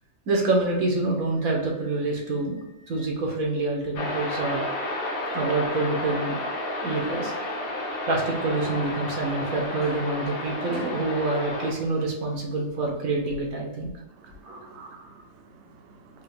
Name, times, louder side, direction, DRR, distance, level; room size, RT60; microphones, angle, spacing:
voice 1, 0.3-2.6 2.9-4.7 5.3-6.4 6.8-7.3 8.1-13.9 14.4-14.7, right 2 dB, 85° right, 1.5 m, -27 dB
sound 1, 3.9-11.7, left 1 dB, 50° left, 0.9 m, -31 dB
voice 2, 14.1-16.2, right 4 dB, 65° right, 0.8 m, -50 dB
4.5 x 2.4 x 3.4 m
omnidirectional pair, 1.4 m